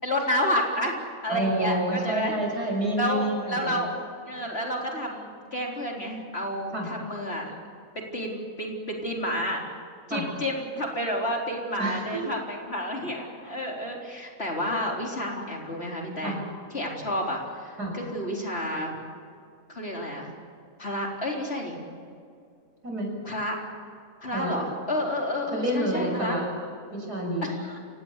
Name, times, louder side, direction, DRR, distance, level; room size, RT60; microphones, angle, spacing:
voice 1, 0.0-0.9 1.2-2.3 3.0-3.9 4.3-7.5 7.9-9.6 10.1-16.4 16.7-19.0 19.7-20.3 20.8-21.8 23.2-23.6 24.2-26.4 27.4-27.8, equal, 40° left, 0 dB, 4.3 m, -30 dB
voice 2, 1.3-3.8 6.7-6.9 10.1-10.3 11.8-12.0 16.2-16.4 17.8-17.9 22.8-23.1 24.3-24.6 25.5-26.5 26.9-27.6, right 1 dB, 75° right, 1 dB, 7.1 m, -28 dB
29.0 x 17.5 x 8.3 m, 2.3 s
omnidirectional pair, 1.7 m